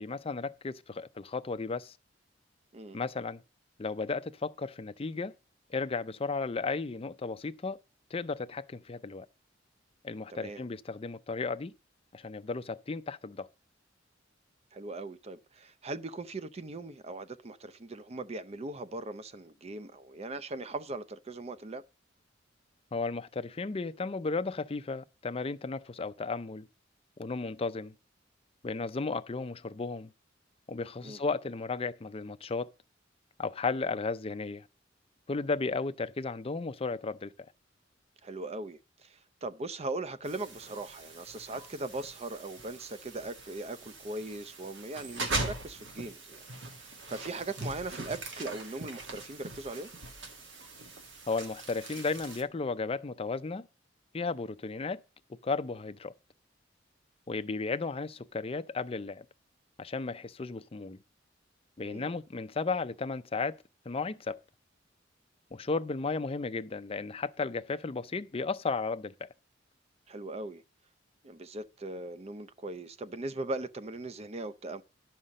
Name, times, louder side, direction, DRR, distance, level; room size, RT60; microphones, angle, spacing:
voice 1, 0.0-1.9 2.9-3.4 3.8-5.3 5.7-7.8 8.1-9.3 10.0-11.7 12.1-13.5 22.9-26.7 27.2-27.9 28.6-30.1 30.7-32.7 33.4-34.7 35.3-37.3 51.3-53.7 54.1-55.0 55.4-56.1 57.3-59.2 59.8-61.0 61.8-63.6 63.9-64.4 65.5-69.3, left 4 dB, 30° left, 0.5 m, -34 dB
voice 2, 10.3-10.6 14.7-21.8 31.0-31.2 38.2-46.4 46.8-49.9 61.8-62.1 70.1-70.6 71.2-74.8, right 2 dB, 35° right, 0.6 m, -39 dB
sound 1, 40.2-52.4, right 2 dB, 70° right, 1.7 m, -41 dB
11.0 x 5.6 x 6.4 m
head